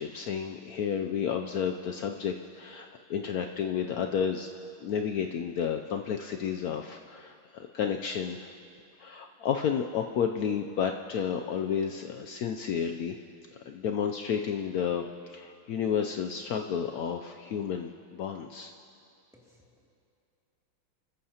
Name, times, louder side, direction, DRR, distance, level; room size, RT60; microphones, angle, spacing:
voice 1, 0.0-4.5 4.8-8.5 9.0-13.2 13.6-18.7, left 7 dB, 85° left, 4 dB, 0.8 m, -31 dB
voice 2, 19.3-19.9, left 1 dB, ahead, -4 dB, 2.2 m, -61 dB
27.0 x 14.5 x 2.9 m, 2.6 s
omnidirectional pair, 2.2 m